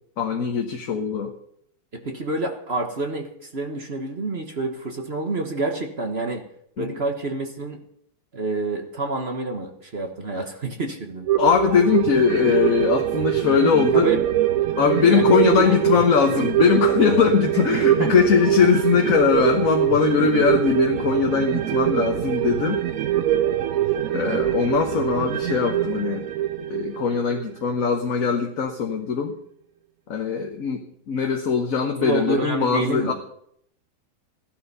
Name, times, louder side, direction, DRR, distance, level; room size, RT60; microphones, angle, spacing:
voice 1, 0.2-1.3 6.8-7.0 11.4-14.1 14.8-22.8 24.1-26.3 26.7-29.4 30.1-33.1, left 6 dB, 50° left, 3 dB, 1.4 m, -21 dB
voice 2, 1.9-6.4 6.8-7.8 8.3-11.3 13.9-14.3 15.0-15.8 17.7-18.1 24.2-24.5 32.0-33.1, right 2 dB, 35° right, 4 dB, 1.3 m, -28 dB
sound 1, 11.3-28.1 28.4-28.5, right 12 dB, 60° right, 0.9 m, -23 dB
15.0 x 12.0 x 5.5 m, 0.69 s
omnidirectional pair, 2.1 m